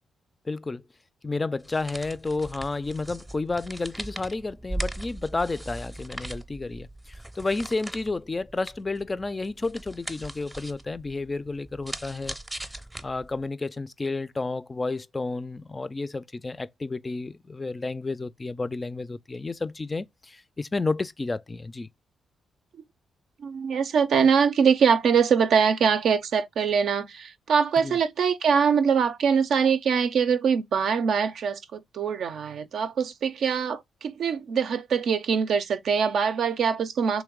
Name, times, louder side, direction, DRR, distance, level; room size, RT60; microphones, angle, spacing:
voice 1, 0.5-0.8 1.2-12.4 13.0-21.9 27.8-28.0, left 3 dB, 30° left, 0.3 m, -31 dB
sound 1, 1.6-13.5, right 1 dB, 15° right, 0.6 m, -39 dB
voice 2, 23.4-37.2, right 6 dB, 70° right, 0.4 m, -23 dB
3.1 x 3.1 x 3.5 m
hypercardioid pair, 45°, 0 cm